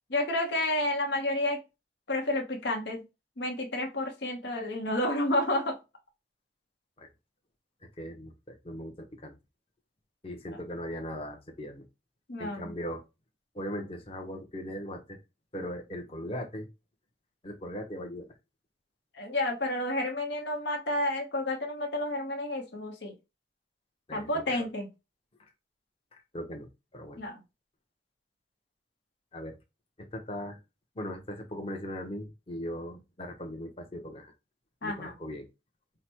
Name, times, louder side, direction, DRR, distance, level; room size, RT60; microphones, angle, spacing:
voice 1, 0.1-1.6 2.1-3.0 3.4-5.8 12.3-12.7 19.1-23.1 24.1-24.9 27.2-27.4 34.8-35.1, left 1 dB, 75° left, 2 dB, 1.0 m, -30 dB
voice 2, 8.0-9.3 10.2-11.8 12.4-13.0 13.5-15.2 15.5-16.7 17.4-18.3 24.1-24.6 26.1-26.7 26.9-27.2 29.3-29.6 30.0-30.6 31.0-34.3 34.8-35.5, equal, 30° left, 4 dB, 0.8 m, -39 dB
4.9 x 2.1 x 4.4 m, 0.26 s
head